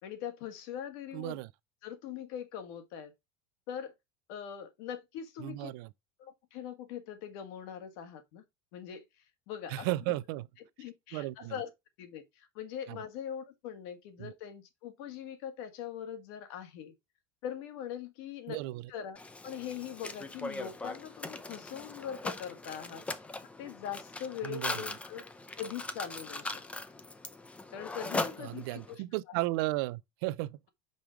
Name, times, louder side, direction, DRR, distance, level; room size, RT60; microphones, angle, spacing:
voice 1, 0.0-1.4 1.8-3.1 3.7-3.9 4.3-5.7 6.2-8.4 8.7-9.0 9.5-10.2 10.8-11.7 12.0-16.9 17.4-18.6 18.9-19.2 19.4-23.0 23.6-25.2 25.6-26.6 27.7-29.0, left 9 dB, 65° left, 1.6 m, -42 dB
voice 2, 1.1-1.5 5.4-5.9 9.7-10.5 11.1-11.6 12.9-13.0 14.2-14.3 18.5-18.9 24.4-24.8 28.4-30.6, right 18 dB, 65° right, 0.5 m, -34 dB
Mechanisms, 19.2-28.9, left 2 dB, 10° left, 0.6 m, -40 dB
5.3 x 4.6 x 5.0 m
supercardioid pair, 145°, 13 cm